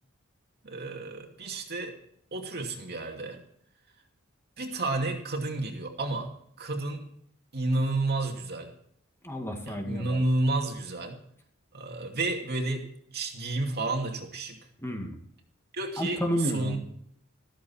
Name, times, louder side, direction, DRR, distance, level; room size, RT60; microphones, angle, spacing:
voice 1, 0.6-2.0 2.3-3.4 4.6-6.3 6.6-7.1 7.5-8.7 9.6-11.2 11.7-14.6 15.7-16.8, right 2 dB, 50° right, 3 dB, 2.6 m, -31 dB
voice 2, 9.2-10.2 14.8-15.2 16.0-16.8, equal, 10° left, 3 dB, 2.2 m, -31 dB
14.5 x 14.5 x 4.5 m, 0.67 s
head